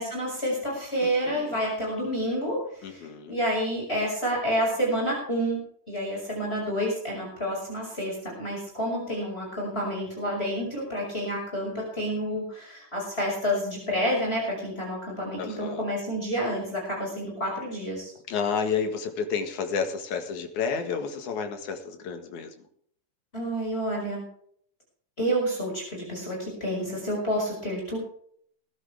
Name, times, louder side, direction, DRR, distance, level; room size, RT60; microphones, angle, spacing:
voice 1, 0.0-5.6 5.9-18.1 23.3-24.2 25.2-28.0, equal, 15° left, -2 dB, 6.1 m, -29 dB
voice 2, 1.0-1.6 2.8-3.3 15.4-15.8 18.3-22.5, left 6 dB, 70° left, 5 dB, 3.1 m, -31 dB
20.5 x 12.0 x 3.6 m, 0.63 s
omnidirectional pair, 3.6 m